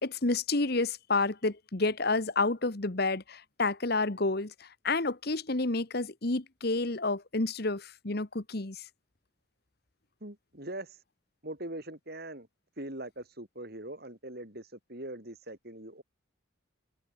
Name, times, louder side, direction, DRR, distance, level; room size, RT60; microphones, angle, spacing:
voice 1, 0.0-8.8, left 3 dB, 50° left, 1.4 m, -30 dB
voice 2, 10.2-11.0 11.4-12.5 12.8-16.0, right 1 dB, 50° right, 4.1 m, -42 dB
head